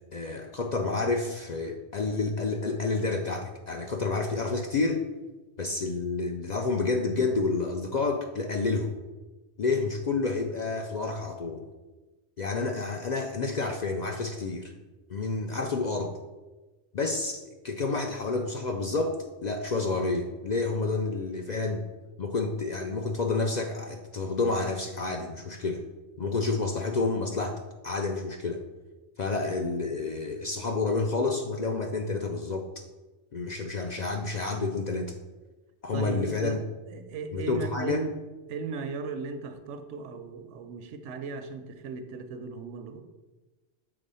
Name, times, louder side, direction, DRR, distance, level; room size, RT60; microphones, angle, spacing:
voice 1, 0.1-5.0 5.6-8.9 9.6-11.6 12.4-14.7 15.1-16.1 16.9-21.8 22.2-25.8 26.2-28.6 29.2-32.7 33.3-35.1 35.8-36.6 37.3-38.0, left 3 dB, 55° left, 4 dB, 0.5 m, -29 dB
voice 2, 35.9-38.2 38.5-43.0, right 4 dB, 85° right, 8 dB, 1.0 m, -37 dB
6.8 x 3.6 x 5.4 m, 1.2 s
omnidirectional pair, 1.2 m